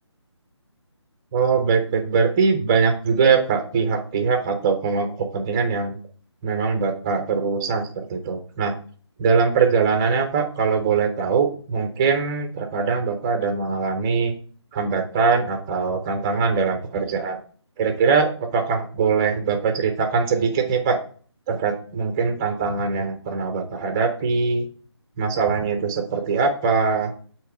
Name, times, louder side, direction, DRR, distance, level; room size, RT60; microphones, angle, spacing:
voice 1, 1.3-5.9 6.4-8.7 9.2-14.3 14.7-17.4 17.8-21.0 21.5-24.7 25.2-27.1, right 5 dB, 10° right, 5 dB, 0.4 m, -22 dB
7.9 x 2.9 x 4.9 m, 0.43 s
figure-of-eight pair, 155°, 15 cm